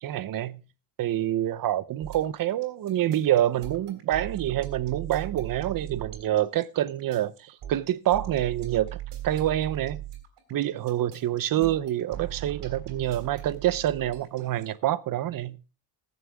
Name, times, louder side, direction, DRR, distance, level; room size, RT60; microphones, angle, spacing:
voice 1, 0.0-0.6 1.0-9.0 9.2-10.0 10.5-15.6, right 12 dB, 50° right, 0.7 m, -27 dB
sound 1, 2.0-14.8, right 14 dB, 75° right, 3.6 m, -39 dB
21.0 x 7.3 x 3.5 m
cardioid pair, 180°, 44 cm